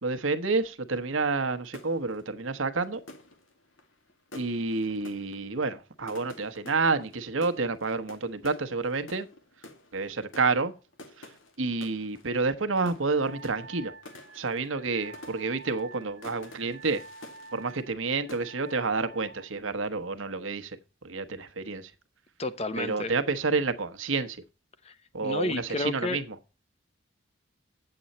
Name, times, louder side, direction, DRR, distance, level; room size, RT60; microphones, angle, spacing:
voice 1, 0.0-3.0 4.3-9.3 9.9-10.7 11.6-13.9 14.3-17.0 17.5-20.8 21.0-21.9 22.8-24.4 25.1-26.2, right 3 dB, 85° right, 1.1 m, -29 dB
sound 1, 1.6-18.0 18.3-18.8, left 2 dB, 85° left, 2.0 m, -50 dB
Wind instrument woodwind instrument, 13.2-19.5, right 3 dB, 55° right, 1.0 m, -48 dB
voice 2, 22.4-23.1 24.8-24.9 25.2-26.2, left 2 dB, 30° left, 0.8 m, -31 dB
9.1 x 7.8 x 4.1 m
head